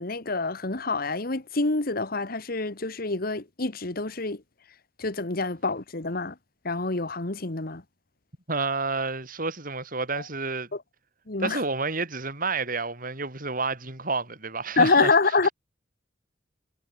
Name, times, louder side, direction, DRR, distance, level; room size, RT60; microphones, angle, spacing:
voice 1, 0.0-4.4 5.0-6.3 6.6-7.8 10.7-10.8 11.3-11.6 14.8-15.5, left 3 dB, 55° left, 1.7 m, -26 dB
voice 2, 8.5-10.7 11.4-15.1, right 3 dB, 50° right, 5.1 m, -30 dB
head